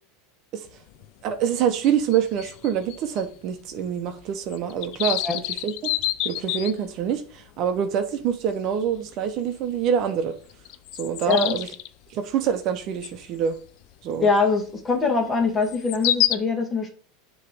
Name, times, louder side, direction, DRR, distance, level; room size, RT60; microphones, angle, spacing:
sound 1, 0.7-0.8 1.0-1.1 1.5-3.3 3.6-3.7 4.1-4.2 4.5-7.1 7.8-7.9 8.3-8.5 8.9-9.1 10.0-10.1 10.5-11.9 13.0-13.2 13.7-13.8 15.6-16.4, left 14 dB, 60° left, 0.4 m, -27 dB
voice 1, 1.2-5.2 5.5-5.7 6.2-10.3 10.9-11.7 12.1-13.6 14.0-14.3, right 8 dB, 50° right, 0.8 m, -25 dB
voice 2, 11.3-11.6 14.2-16.9, left 4 dB, 20° left, 1.6 m, -23 dB
6.6 x 3.1 x 4.9 m
supercardioid pair, 115°, 0 cm